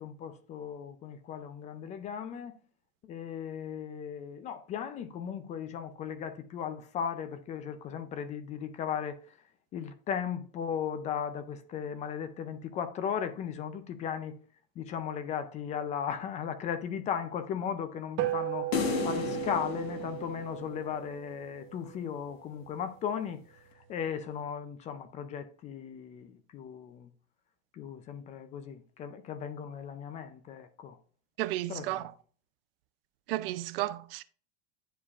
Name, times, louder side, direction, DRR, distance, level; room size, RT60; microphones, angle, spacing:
voice 1, 0.0-2.5 3.1-9.2 9.7-14.3 14.8-18.7 19.0-23.4 23.9-27.1 27.7-31.0 31.7-32.1, left 8 dB, 25° left, 0.4 m, -36 dB
sound 1, 18.2-22.8, right 15 dB, 40° right, 1.0 m, -36 dB
sound 2, 18.7-21.1, left 7 dB, 90° left, 1.2 m, -34 dB
voice 2, 31.4-32.0 33.3-34.2, right 16 dB, 70° right, 0.5 m, -33 dB
10.0 x 4.8 x 2.4 m
supercardioid pair, 150°, 30 cm